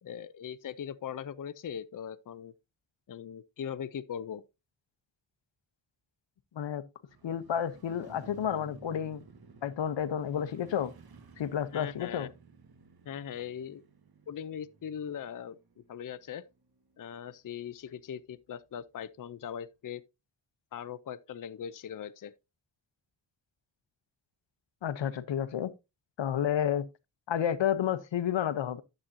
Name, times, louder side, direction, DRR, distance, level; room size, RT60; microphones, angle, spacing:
voice 1, 0.0-2.5 3.1-4.4 11.7-12.3 13.1-13.8 14.3-15.6 15.9-16.5 17.0-20.0 20.7-22.3, left 8 dB, 45° left, 0.6 m, -40 dB
Motorcycle, 7.1-17.2 17.5-17.6, right 4 dB, 55° right, 1.4 m, -55 dB
voice 2, 7.2-9.2 9.6-10.9 11.4-12.3 24.8-25.7 26.2-26.9 27.3-28.8, left 9 dB, 80° left, 0.8 m, -31 dB
11.5 x 7.6 x 2.6 m
wide cardioid pair, 100°, 44 cm